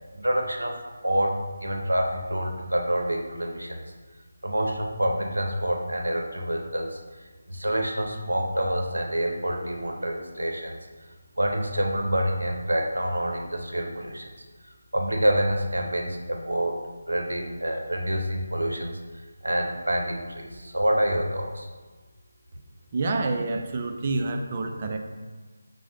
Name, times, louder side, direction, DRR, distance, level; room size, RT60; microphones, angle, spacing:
voice 1, 0.1-0.8 1.0-3.9 4.4-7.0 7.5-10.9 11.4-14.3 14.9-16.8 17.1-19.0 19.4-21.7, right 1 dB, 80° right, 2 dB, 0.6 m, -27 dB
voice 2, 22.9-25.0, right 3 dB, 35° right, 4 dB, 0.4 m, -27 dB
4.7 x 2.1 x 3.7 m, 1.3 s
figure-of-eight pair, 160°, 0 cm